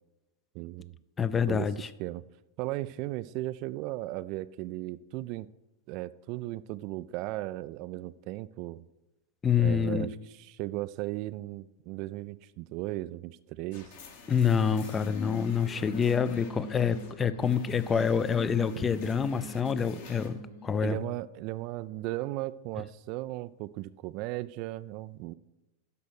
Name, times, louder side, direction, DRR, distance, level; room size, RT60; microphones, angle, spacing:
voice 1, 0.5-0.9 1.5-1.7 2.0-2.2 2.6-5.5 5.9-8.8 9.6-13.9 18.8-18.9 20.8-25.3, right 17 dB, 45° right, 16 dB, 0.3 m, -36 dB
voice 2, 1.2-1.9 9.4-10.1 14.3-21.0, left 7 dB, 20° left, 15 dB, 0.5 m, -27 dB
sound 1, 13.7-20.3, left 5 dB, 55° left, 1.7 m, -51 dB
sound 2, 14.6-21.0, left 2 dB, 75° left, 2.8 m, -44 dB
12.5 x 5.1 x 6.3 m, 1.0 s
figure-of-eight pair, 90°, 0 cm